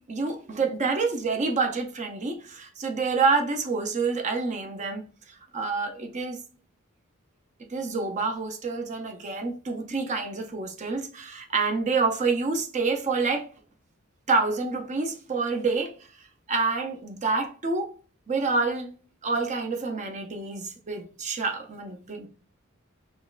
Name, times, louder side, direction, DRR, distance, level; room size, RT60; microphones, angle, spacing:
voice 1, 0.1-6.4 7.7-13.5 14.3-15.9 16.5-17.9 18.3-18.9 19.2-22.3, right 4 dB, 35° right, 0.5 m, -27 dB
5.2 x 2.1 x 2.4 m
head